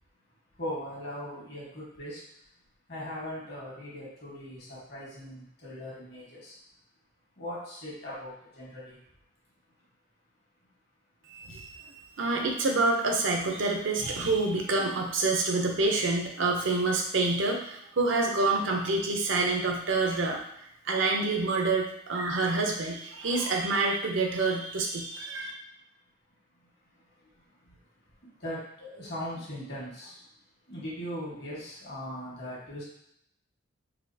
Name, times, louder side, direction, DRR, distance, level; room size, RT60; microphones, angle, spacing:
voice 1, 0.5-2.2 2.9-6.6 7.4-9.0 25.4-25.5 26.6-27.8 28.2-30.3 30.7-32.8, equal, 55° left, -6 dB, 1.4 m, -40 dB
voice 2, 11.3-20.4 20.8-25.5, right 3 dB, 70° right, 1 dB, 0.6 m, -27 dB
4.1 x 2.4 x 2.7 m, 0.76 s
head